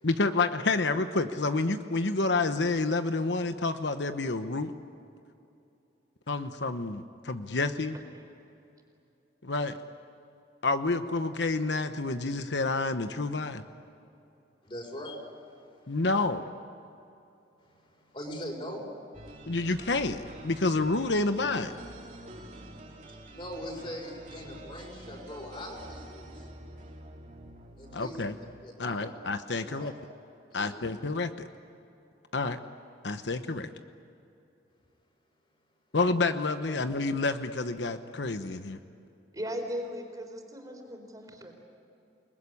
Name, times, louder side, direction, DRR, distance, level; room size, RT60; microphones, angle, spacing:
voice 1, 0.0-4.7 6.3-8.0 9.4-9.8 10.6-13.6 15.9-16.5 19.5-21.8 27.9-28.3 28.8-29.9 30.5-31.5 32.3-32.6 33.0-33.7 35.9-38.8, left 3 dB, 80° left, 9 dB, 1.0 m, -29 dB
voice 2, 14.6-16.0 17.6-18.9 23.1-26.5 27.8-28.2 28.6-29.1 29.5-29.9 30.5-30.9 36.6-36.8, equal, 30° left, 0 dB, 6.2 m, -42 dB
sound 1, 19.1-29.0, right 1 dB, 40° right, 2.8 m, -48 dB
voice 3, 39.3-41.5, equal, 20° right, 2 dB, 4.2 m, -38 dB
30.0 x 20.5 x 9.8 m, 2.7 s
head